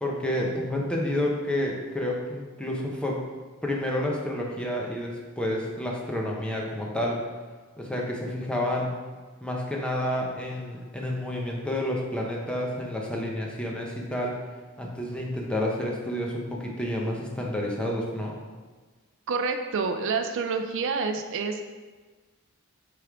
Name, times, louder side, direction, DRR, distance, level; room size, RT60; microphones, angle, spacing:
voice 1, 0.0-3.2 3.6-7.2 7.8-8.9 9.4-14.3 14.8-18.3, left 1 dB, 5° left, -2 dB, 0.8 m, -29 dB
voice 2, 19.3-21.6, right 4 dB, 60° right, 6 dB, 0.4 m, -28 dB
8.1 x 3.5 x 3.5 m, 1.4 s
head